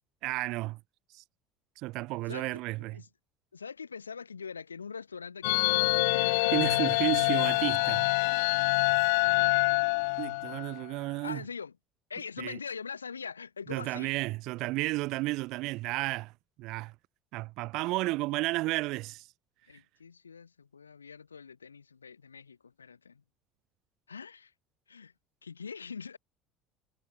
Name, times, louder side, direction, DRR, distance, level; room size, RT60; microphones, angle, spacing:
voice 1, 0.2-0.8 1.1-1.2 1.8-3.0 6.5-8.1 10.2-11.4 12.4-12.6 13.7-16.3 16.6-16.9 17.3-19.3, right 21 dB, 60° right, 4.0 m, -32 dB
voice 2, 2.3-3.1 3.5-7.1 9.2-9.6 11.2-11.7 12.1-14.1 17.8-18.1 19.7-23.2 24.1-24.5 24.9-25.1 25.4-26.2, left 6 dB, 85° left, 2.9 m, -43 dB
sound 1, 5.4-10.8, left 29 dB, 65° left, 1.1 m, -26 dB
figure-of-eight pair, 65°, 0 cm